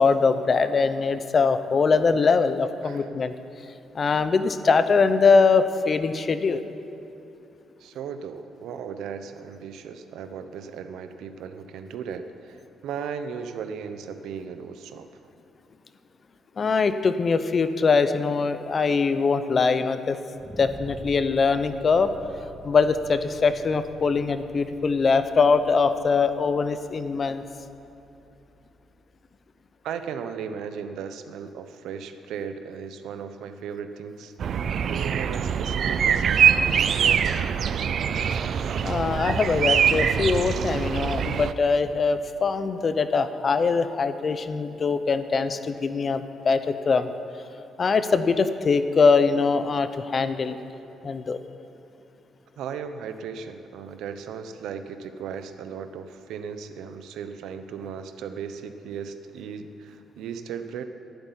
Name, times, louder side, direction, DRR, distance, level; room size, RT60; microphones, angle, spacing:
voice 1, 0.0-3.3 3.9-6.6 16.6-20.2 20.6-22.1 22.6-27.4 38.8-47.1 47.8-50.6 51.0-51.4, left 4 dB, 35° left, 11 dB, 0.6 m, -22 dB
voice 2, 7.8-15.1 29.8-34.3 34.9-37.5 52.6-60.8, right 7 dB, 90° right, 9 dB, 0.8 m, -36 dB
sound 1, 20.4-29.4, right 1 dB, 10° right, 0.7 m, -47 dB
sound 2, 34.4-41.5, right 7 dB, 50° right, 0.4 m, -23 dB
11.5 x 8.2 x 9.9 m, 2.8 s
cardioid pair, 145°, 0 cm